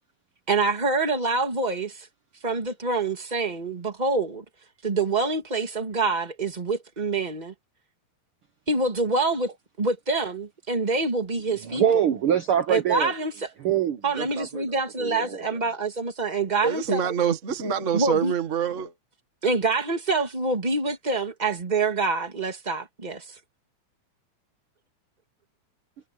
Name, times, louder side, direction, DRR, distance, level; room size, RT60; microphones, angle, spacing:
voice 1, 0.5-2.1 2.4-4.4 4.8-7.5 8.7-9.5 9.8-11.8 12.7-13.3 14.0-17.1 17.9-18.3 19.4-23.4, right 3 dB, 15° right, 1.8 m, -26 dB
voice 2, 11.6-13.1 13.6-15.6, right 9 dB, 70° right, 1.2 m, -25 dB
voice 3, 16.6-18.9, right 7 dB, 35° right, 1.3 m, -25 dB
omnidirectional pair, 4.1 m